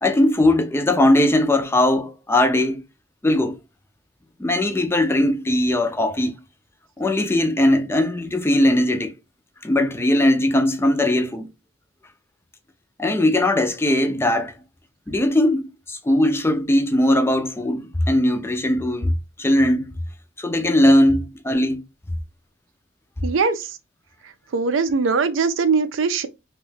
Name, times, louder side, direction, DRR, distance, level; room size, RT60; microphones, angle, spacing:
voice 1, 0.0-2.8 3.2-3.6 4.4-6.4 7.0-9.2 9.6-11.5 13.0-14.5 15.1-19.1 19.4-19.9 20.4-21.8, left 1 dB, 15° left, 0.4 m, -19 dB
voice 2, 23.2-23.6 24.5-26.3, right 4 dB, 90° right, 0.4 m, -21 dB
2.8 x 2.3 x 3.2 m
head